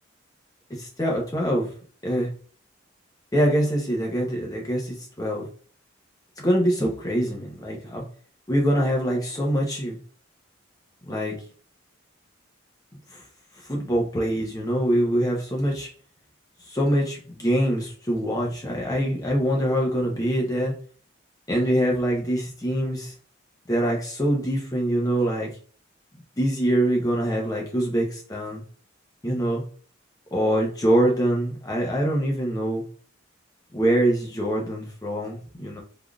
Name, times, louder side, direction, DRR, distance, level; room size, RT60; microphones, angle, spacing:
voice 1, 0.7-1.7 2.0-2.3 3.3-5.5 6.4-8.0 8.5-9.9 11.1-11.3 13.1-13.2 13.7-15.9 16.7-20.7 21.5-23.1 23.7-25.5 26.4-28.6 29.2-29.6 30.3-32.8 33.7-35.8, right 1 dB, 20° left, -1 dB, 0.7 m, -24 dB
3.5 x 2.4 x 2.3 m, 0.43 s
head